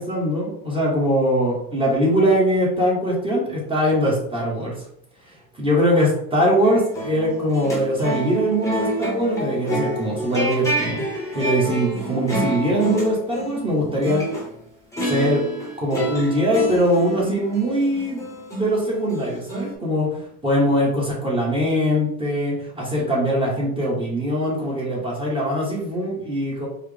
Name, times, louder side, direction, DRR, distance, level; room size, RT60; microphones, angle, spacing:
voice 1, 0.0-4.7 5.6-11.0 11.3-14.2 15.0-15.4 15.8-18.2 18.5-26.7, equal, 10° right, -5 dB, 1.5 m, -22 dB
sound 1, 6.5-14.5 14.9-19.7, right 1 dB, 5° left, 1.2 m, -29 dB
4.7 x 2.5 x 3.5 m, 0.68 s
supercardioid pair, 125°, 43 cm